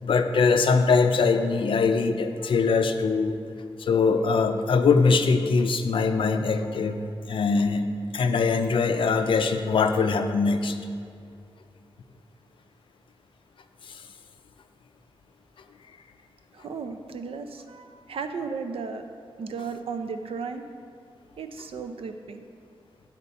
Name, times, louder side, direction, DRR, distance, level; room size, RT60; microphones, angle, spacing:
voice 1, 0.0-3.4 3.8-7.0 7.3-7.9 8.1-10.8 13.9-14.0, left 4 dB, 65° left, 7 dB, 0.5 m, -22 dB
voice 2, 16.5-19.0 19.4-20.6 21.4-22.4, right 5 dB, 75° right, 7 dB, 0.5 m, -35 dB
11.5 x 4.4 x 4.1 m, 2.4 s
wide cardioid pair, 160°, 10 cm